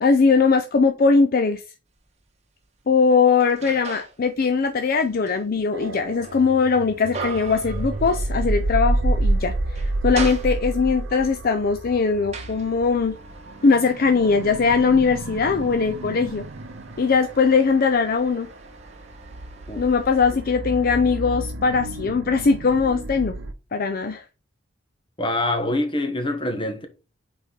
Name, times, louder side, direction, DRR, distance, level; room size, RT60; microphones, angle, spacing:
voice 1, 0.0-1.6 2.9-13.2 13.6-16.4 17.0-18.5 19.8-23.3 23.7-24.2, left 4 dB, 50° left, 0.5 m, -20 dB
sound 1, 1.9-2.1 2.6-4.2 4.6-8.7 9.0-9.2 9.6-11.0 11.7-20.3, right 4 dB, 35° right, 1.3 m, -40 dB
sound 2, 5.7-23.5, right 2 dB, 75° right, 0.8 m, -30 dB
voice 2, 25.2-26.9, left 1 dB, 25° left, 1.4 m, -25 dB
5.7 x 4.3 x 4.0 m
head